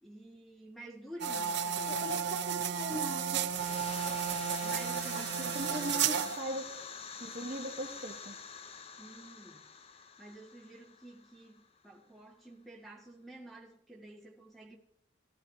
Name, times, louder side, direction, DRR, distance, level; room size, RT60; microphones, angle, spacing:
voice 1, 0.0-2.2 4.6-5.6 9.0-9.7 10.2-14.8, right 1 dB, ahead, 1.7 m, -50 dB
sound 1, 1.2-6.4, right 7 dB, 55° right, 0.6 m, -33 dB
voice 2, 1.9-3.4 5.1-5.3 5.5-6.6 7.2-8.3, right 1 dB, 40° right, 1.0 m, -39 dB
sound 2, 3.3-11.9, left 5 dB, 30° left, 0.6 m, -47 dB
16.5 x 14.0 x 2.8 m
head